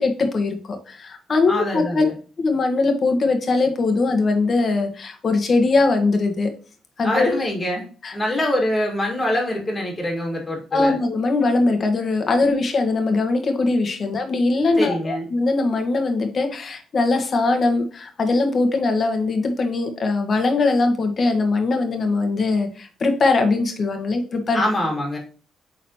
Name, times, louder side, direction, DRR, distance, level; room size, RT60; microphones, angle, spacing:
voice 1, 0.0-2.0 2.4-6.5 7.0-7.3 8.0-8.1 10.7-24.6, left 3 dB, 45° left, 5 dB, 1.5 m, -21 dB
voice 2, 1.5-2.1 7.0-7.8 8.1-11.0 14.8-15.3 24.5-25.2, left 1 dB, 20° left, -2 dB, 2.2 m, -24 dB
8.8 x 4.1 x 3.0 m, 0.40 s
cardioid pair, 90°, 0 cm